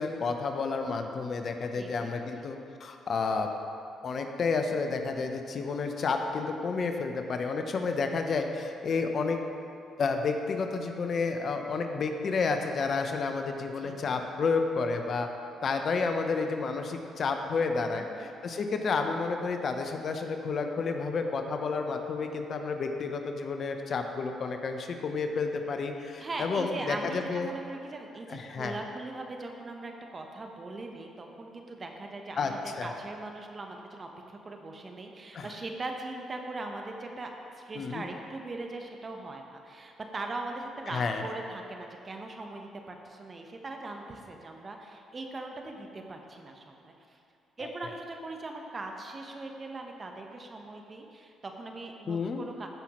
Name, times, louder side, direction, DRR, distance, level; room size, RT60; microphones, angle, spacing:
voice 1, 0.0-3.5 4.0-9.4 10.0-15.3 15.6-27.5 28.3-28.7 32.4-32.9 35.3-35.5 37.7-38.0 40.9-41.2 52.1-52.4, left 4 dB, 55° left, 5 dB, 0.8 m, -30 dB
voice 2, 1.7-2.1 13.8-14.2 17.9-18.3 26.2-47.2 47.6-52.7, right 2 dB, 40° right, 3 dB, 1.1 m, -40 dB
14.5 x 5.7 x 3.1 m, 2.6 s
supercardioid pair, 55°, 0 cm